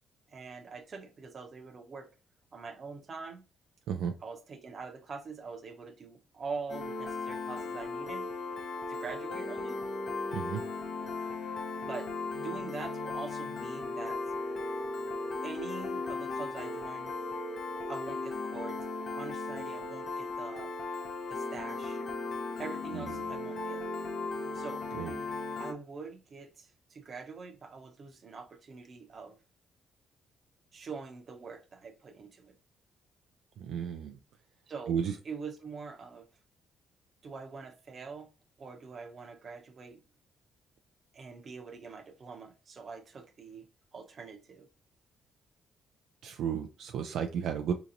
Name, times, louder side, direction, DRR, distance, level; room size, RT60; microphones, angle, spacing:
voice 1, 0.3-2.1 2.5-3.4 4.2-8.3 8.9-9.8 11.8-12.1 12.4-14.2 15.4-17.1 17.9-20.7 21.3-22.0 22.6-23.8 24.5-24.8 25.6-29.4 30.7-32.5 34.7-35.0 35.2-36.3 37.2-38.3 38.6-40.0 41.1-43.7 43.9-44.7, right 5 dB, 45° right, 0.8 m, -44 dB
Piano, 6.7-25.7, left 3 dB, 55° left, 0.6 m, -37 dB
voice 2, 22.9-23.3 24.9-25.2 33.6-34.2 34.9-35.2 46.2-47.7, right 8 dB, 80° right, 0.3 m, -33 dB
3.8 x 2.9 x 2.5 m
cardioid pair, 90°, 0 cm